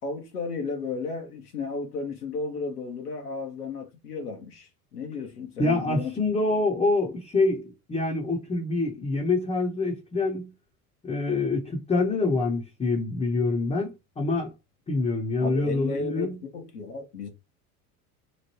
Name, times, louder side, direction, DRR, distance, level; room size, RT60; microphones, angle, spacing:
voice 1, 0.0-6.1 15.4-17.3, left 4 dB, 85° left, 0.9 m, -34 dB
voice 2, 5.6-10.5 11.0-14.5 14.9-16.4, left 3 dB, 15° left, 0.7 m, -26 dB
3.0 x 2.1 x 2.9 m
figure-of-eight pair, 70°, 45 cm